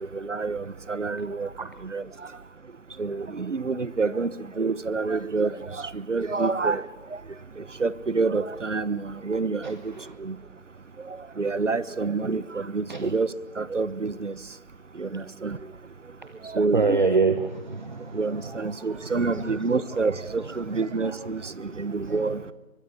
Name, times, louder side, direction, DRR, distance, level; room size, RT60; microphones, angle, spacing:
voice 1, 0.1-1.5 1.8-2.0 3.0-4.3 4.6-6.8 7.1-7.2 7.6-9.9 10.2-10.4 11.1-14.4 15.0-15.6 16.4-17.0 18.1-22.4, right 4 dB, 60° right, 1.3 m, -28 dB
voice 2, 16.7-18.2 18.9-19.2 21.7-21.8 22.1-22.2, right 4 dB, 35° right, 1.2 m, -25 dB
24.0 x 20.5 x 9.9 m
figure-of-eight pair, 165°, 41 cm